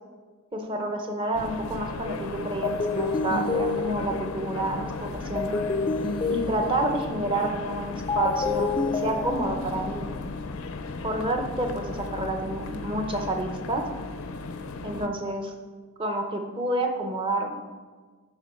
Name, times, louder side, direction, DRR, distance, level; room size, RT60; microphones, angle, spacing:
voice 1, 0.5-5.5 6.3-10.1 11.0-13.9 14.8-15.5 16.0-17.6, right 2 dB, 25° right, 4 dB, 0.7 m, -29 dB
sound 1, 1.3-15.1, left 3 dB, 75° left, 0.5 m, -36 dB
sound 2, 2.6-10.3, left 4 dB, 25° left, 0.3 m, -29 dB
11.0 x 3.8 x 4.3 m, 1.4 s
head